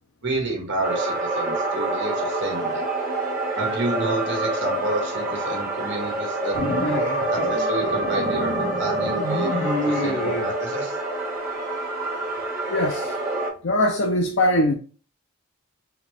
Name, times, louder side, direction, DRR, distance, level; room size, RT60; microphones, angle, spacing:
voice 1, 0.2-2.9 3.6-6.6 7.3-9.5 9.8-11.0, right 2 dB, 55° right, 1.7 m, -29 dB
sound 1, 0.8-13.5, right 2 dB, 15° right, 1.5 m, -26 dB
sound 2, 6.5-10.5, left 1 dB, 75° left, 1.5 m, -28 dB
voice 2, 12.7-13.2 13.6-14.7, left 1 dB, 55° left, 0.5 m, -21 dB
4.8 x 2.2 x 3.3 m
head